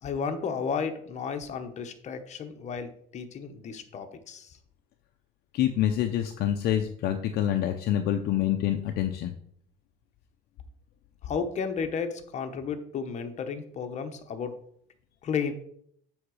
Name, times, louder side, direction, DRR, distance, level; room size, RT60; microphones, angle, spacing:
voice 1, 0.0-4.6 11.2-14.6 15.2-15.5, left 6 dB, 35° left, 7 dB, 1.0 m, -33 dB
voice 2, 5.5-9.3, left 11 dB, 55° left, 6 dB, 0.6 m, -26 dB
7.9 x 3.6 x 6.3 m, 0.66 s
cardioid pair, 130°, 19 cm